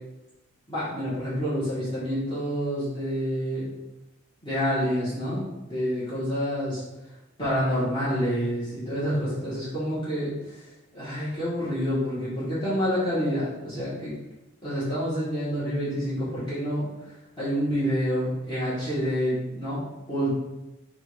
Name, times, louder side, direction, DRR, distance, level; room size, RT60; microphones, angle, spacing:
voice 1, 0.7-3.7 4.4-6.8 7.4-14.1 14.6-19.8 20.1-20.3, equal, 20° left, -12 dB, 1.4 m, -28 dB
3.8 x 2.5 x 4.7 m, 0.98 s
head